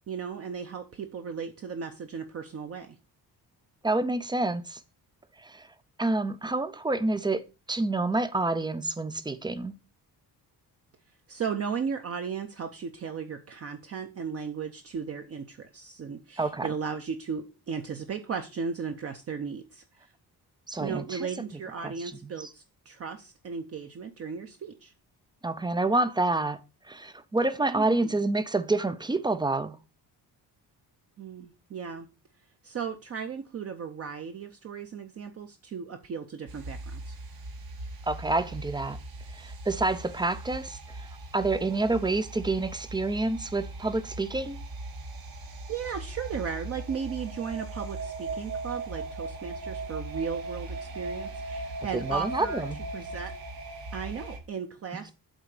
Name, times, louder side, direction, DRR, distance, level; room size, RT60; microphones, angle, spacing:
voice 1, 0.1-3.0 11.3-19.8 20.8-24.9 27.7-28.1 31.2-32.1 32.6-37.1 45.7-52.6 52.9-53.3 53.9-55.1, right 6 dB, 40° right, 0.7 m, -36 dB
voice 2, 3.8-4.8 5.4-5.7 6.0-7.4 7.7-9.7 16.4-16.7 20.7-21.3 21.8-21.9 22.4-22.5 25.4-26.6 26.9-29.8 38.1-39.0 39.3-41.1 41.3-44.6 51.9-52.8, right 2 dB, 10° right, 0.4 m, -28 dB
sound 1, 36.5-54.4, right 2 dB, 65° right, 1.8 m, -39 dB
8.1 x 3.9 x 6.5 m
wide cardioid pair, 180°, 38 cm